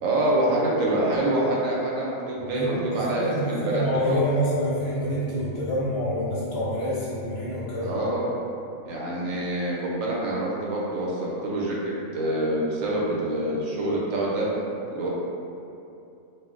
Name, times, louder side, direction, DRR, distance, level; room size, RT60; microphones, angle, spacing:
voice 1, 0.0-4.2 7.8-8.4 8.9-11.8 12.1-14.5 14.9-15.1, right 1 dB, 75° right, -5 dB, 1.0 m, -26 dB
voice 2, 2.5-8.0, equal, 65° left, -8 dB, 0.7 m, -27 dB
2.4 x 2.0 x 3.6 m, 2.7 s
omnidirectional pair, 1.4 m